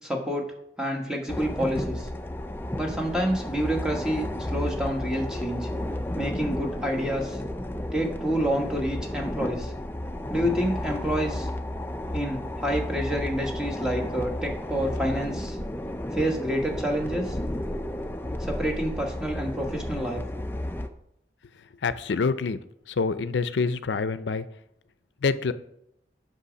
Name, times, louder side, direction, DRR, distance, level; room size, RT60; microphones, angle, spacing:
voice 1, 0.0-0.5 0.8-2.1 2.8-5.7 6.2-7.4 7.9-9.7 10.3-11.5 12.1-15.6 16.1-17.4 18.4-20.2, equal, 5° right, 1 dB, 1.2 m, -28 dB
sound 1, 1.3-20.9, left 1 dB, 10° left, 0.4 m, -32 dB
voice 2, 21.8-22.6 22.9-24.5 25.2-25.5, left 4 dB, 90° left, 14 dB, 0.5 m, -26 dB
8.3 x 6.0 x 5.1 m, 0.78 s
head